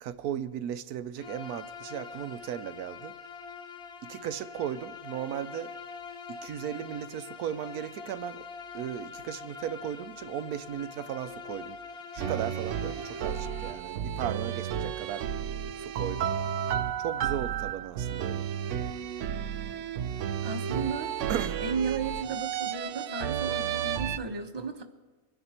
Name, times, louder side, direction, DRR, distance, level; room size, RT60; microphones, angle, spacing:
voice 1, 0.0-3.1 4.0-5.7 6.3-8.5 8.7-11.8 12.1-15.3 15.8-16.3 17.0-18.5 21.3-21.6, right 10 dB, 85° right, 1.1 m, -36 dB
Bowed string instrument, 1.2-13.9, left 5 dB, 45° left, 1.4 m, -44 dB
sound 1, 12.2-24.2, right 9 dB, 65° right, 0.8 m, -32 dB
voice 2, 20.4-21.1 21.6-24.8, right 5 dB, 20° right, 1.0 m, -34 dB
23.5 x 10.5 x 4.3 m
omnidirectional pair, 1.6 m